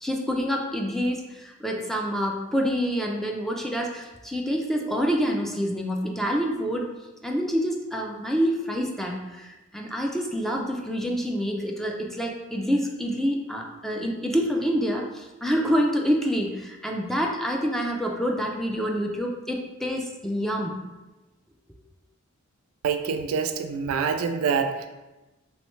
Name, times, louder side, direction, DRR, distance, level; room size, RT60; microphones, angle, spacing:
voice 1, 0.0-6.9 7.2-20.8, equal, ahead, 0 dB, 0.3 m, -27 dB
voice 2, 22.8-24.9, right 6 dB, 90° right, 7 dB, 0.4 m, -26 dB
3.2 x 3.1 x 3.1 m, 1.1 s
head